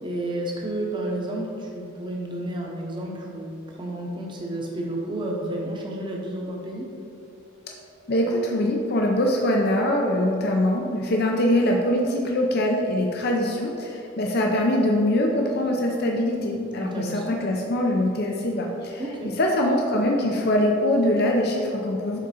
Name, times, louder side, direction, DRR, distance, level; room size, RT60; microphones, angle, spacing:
voice 1, 0.0-6.9 16.8-17.4 19.0-19.4, right 1 dB, 20° right, -1 dB, 0.8 m, -31 dB
voice 2, 8.1-19.0 19.4-22.2, left 1 dB, 50° left, 0 dB, 0.5 m, -23 dB
7.3 x 3.8 x 4.2 m, 2.7 s
head